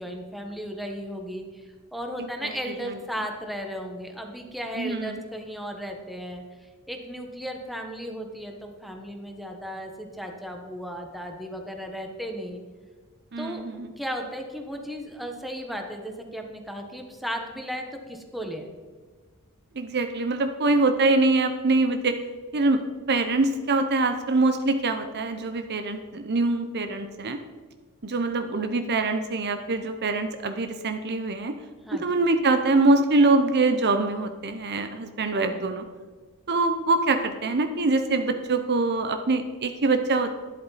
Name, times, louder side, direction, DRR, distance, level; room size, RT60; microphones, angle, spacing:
voice 1, 0.0-12.6 13.4-13.6 14.0-18.7 31.9-32.0, equal, ahead, 2 dB, 1.3 m, -35 dB
voice 2, 2.2-2.5 4.8-5.2 13.3-13.9 19.7-22.2 22.5-22.8 23.1-27.4 28.0-31.5 31.9-35.8 36.5-40.3, right 3 dB, 50° right, 7 dB, 0.8 m, -24 dB
12.0 x 11.0 x 4.2 m, 1.4 s
head